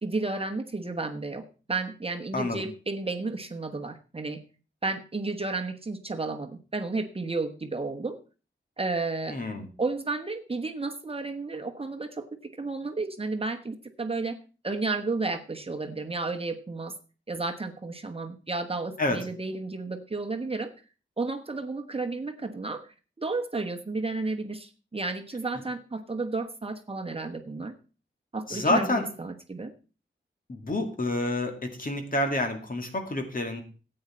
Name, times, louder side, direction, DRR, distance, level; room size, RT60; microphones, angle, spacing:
voice 1, 0.0-4.4 4.8-8.2 8.8-9.4 9.8-14.4 14.6-16.9 17.3-20.7 21.2-27.7 28.3-29.7, right 3 dB, 30° right, 5 dB, 1.1 m, -32 dB
voice 2, 2.3-2.6 9.3-9.7 19.0-19.2 28.5-29.0 30.5-33.6, left 2 dB, 45° left, 4 dB, 2.3 m, -28 dB
14.0 x 8.9 x 4.4 m, 0.35 s
wide cardioid pair, 105°, 20 cm